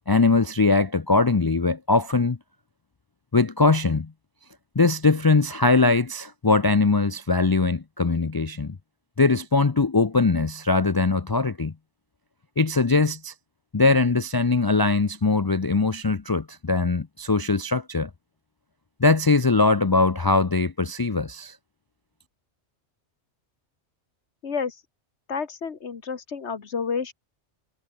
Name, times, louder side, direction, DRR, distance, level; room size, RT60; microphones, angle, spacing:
voice 1, 0.1-2.4 3.3-4.1 4.8-8.8 9.2-11.7 12.6-13.3 13.7-18.1 19.0-21.6, left 3 dB, 25° left, 0.5 m, -21 dB
voice 2, 24.4-24.8 25.3-27.1, left 5 dB, 90° left, 1.8 m, -30 dB
omnidirectional pair, 1.1 m